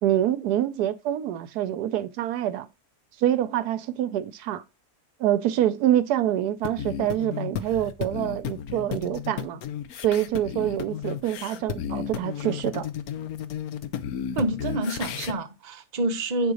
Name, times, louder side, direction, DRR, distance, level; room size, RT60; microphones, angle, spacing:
voice 1, 0.0-2.7 3.2-4.6 5.2-9.6 10.0-12.9, right 12 dB, 80° right, 1.1 m, -26 dB
sound 1, 6.6-15.3, left 9 dB, 70° left, 1.2 m, -33 dB
voice 2, 14.4-16.5, right 2 dB, 35° right, 0.8 m, -27 dB
9.1 x 3.9 x 6.2 m
omnidirectional pair, 1.7 m